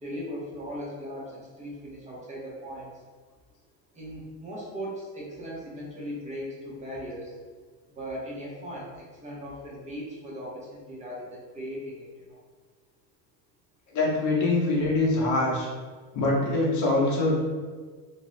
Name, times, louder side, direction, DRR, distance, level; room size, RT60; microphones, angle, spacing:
voice 1, 0.0-2.9 3.9-7.3 8.0-12.1, equal, 15° right, -5 dB, 0.8 m, -38 dB
voice 2, 13.9-15.7 16.1-17.4, left 2 dB, 40° left, -4 dB, 0.9 m, -24 dB
2.6 x 2.2 x 3.1 m, 1.5 s
supercardioid pair, 120°, 48 cm